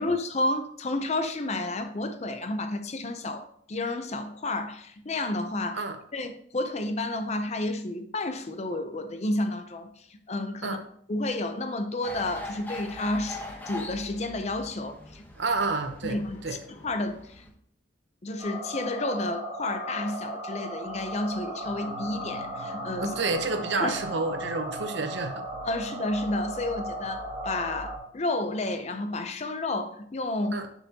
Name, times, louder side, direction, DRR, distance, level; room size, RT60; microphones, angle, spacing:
voice 1, 0.0-5.8 6.1-10.8 11.1-15.3 16.0-16.4 16.7-17.4 18.2-23.2 23.7-23.9 25.6-30.6, left 2 dB, 35° left, 0.5 m, -31 dB
sound 1, 12.0-17.5, left 2 dB, 10° left, 0.9 m, -42 dB
voice 2, 15.4-16.2 16.4-16.6 23.0-25.4 30.5-30.7, right 3 dB, 60° right, 0.7 m, -29 dB
sound 2, 18.4-28.0, right 1 dB, 25° right, 1.2 m, -36 dB
6.9 x 5.9 x 2.8 m
head